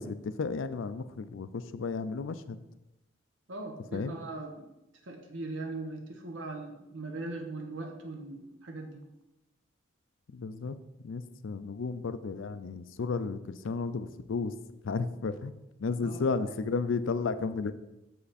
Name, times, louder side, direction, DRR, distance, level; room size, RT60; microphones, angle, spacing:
voice 1, 0.0-2.6 3.9-4.2 10.3-10.8 11.0-14.5 14.8-15.5 15.8-17.7, left 4 dB, 75° left, 13 dB, 0.4 m, -33 dB
voice 2, 3.5-4.7 5.0-9.0 16.0-16.3, right 2 dB, 75° right, 3 dB, 0.8 m, -40 dB
7.0 x 5.6 x 4.2 m, 0.95 s
head